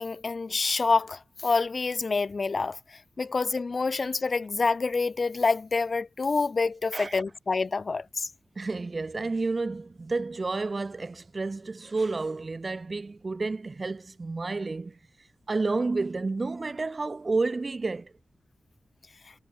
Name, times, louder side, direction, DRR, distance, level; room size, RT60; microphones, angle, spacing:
voice 1, 0.0-2.8 3.2-8.3, left 4 dB, 50° left, 0.3 m, -27 dB
voice 2, 6.9-7.2 8.6-15.0 15.5-18.1, right 3 dB, 40° right, 0.7 m, -30 dB
wide cardioid pair, 110°, 0 cm